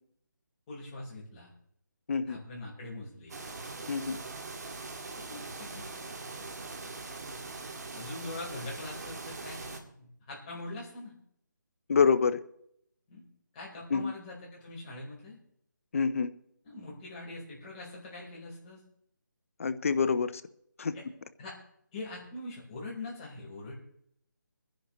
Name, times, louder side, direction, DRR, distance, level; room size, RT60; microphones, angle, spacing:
voice 1, 0.7-1.5 2.3-3.3 5.2-6.0 7.9-11.1 13.1-13.2 13.5-15.4 16.6-18.8 20.9-21.0 21.4-21.5 21.9-23.7, left 2 dB, 20° left, -5 dB, 4.3 m, -43 dB
sound 1, 3.3-9.8, right 3 dB, 55° right, 2.1 m, -42 dB
voice 2, 3.9-4.2 11.9-12.4 13.9-14.1 15.9-16.3 19.6-20.4 20.8-20.9, left 5 dB, 45° left, 13 dB, 0.8 m, -26 dB
23.5 x 10.5 x 3.2 m, 0.69 s
figure-of-eight pair, 165°, 11 cm